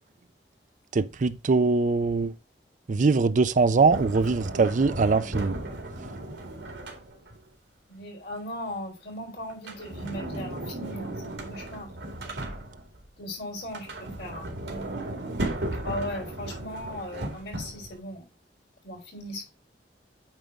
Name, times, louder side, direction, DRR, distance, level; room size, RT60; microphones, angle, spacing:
voice 1, 0.9-2.3 2.9-5.6, right 4 dB, 45° right, 0.5 m, -22 dB
Sliding door, 3.9-7.4 9.5-13.0 13.6-18.0, right 1 dB, 80° right, 2.1 m, -35 dB
voice 2, 7.9-11.9 13.2-13.9 14.2-14.5 15.8-18.2 18.8-19.5, left 1 dB, 75° left, 4.1 m, -37 dB
9.1 x 3.5 x 5.1 m
head